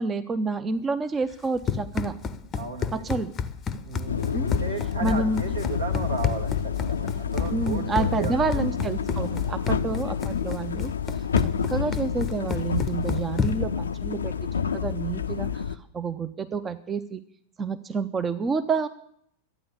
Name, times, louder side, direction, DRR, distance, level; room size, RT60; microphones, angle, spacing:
voice 1, 0.0-2.2 2.9-3.3 4.3-4.5 5.0-5.4 7.5-10.9 11.4-14.3 14.7-17.2 17.6-18.9, right 4 dB, 20° right, 12 dB, 0.6 m, -29 dB
Run, 1.3-13.8, left 6 dB, 25° left, 0.7 m, -32 dB
voice 2, 2.6-3.0 3.8-8.6 9.6-10.1, right 4 dB, 75° right, 3 dB, 2.0 m, -35 dB
sound 1, 4.1-15.8, left 7 dB, 70° left, 0.5 m, -29 dB
13.0 x 9.3 x 8.2 m, 0.70 s
figure-of-eight pair, 90°, 0 cm